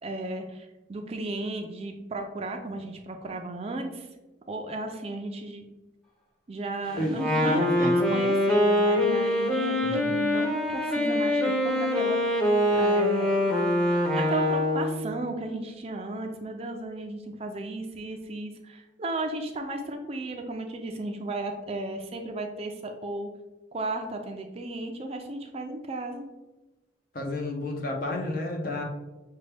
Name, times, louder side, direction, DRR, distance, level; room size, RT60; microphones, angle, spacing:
voice 1, 0.0-4.1 4.5-5.6 6.5-12.4 12.7-13.5 14.2-23.3 23.7-26.2, right 2 dB, 30° right, 4 dB, 0.4 m, -35 dB
voice 2, 6.9-7.9 9.8-10.1 27.1-28.8, left 1 dB, 45° left, 1 dB, 0.7 m, -31 dB
Wind instrument woodwind instrument, 7.1-15.1, left 1 dB, 5° left, 0.7 m, -24 dB
6.2 x 2.2 x 3.3 m, 1.1 s
head